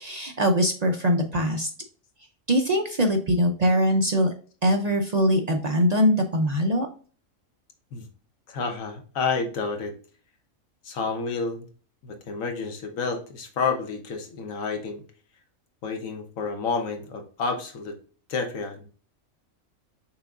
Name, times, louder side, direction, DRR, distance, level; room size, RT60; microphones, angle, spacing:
voice 1, 0.0-1.7 2.5-4.3 4.6-6.9, equal, 60° right, 3 dB, 0.4 m, -22 dB
voice 2, 8.5-9.9 10.8-11.7 12.0-15.0 15.8-17.9 18.3-18.9, left 4 dB, 75° left, 5 dB, 1.3 m, -30 dB
5.9 x 3.5 x 2.4 m, 0.40 s
omnidirectional pair, 1.4 m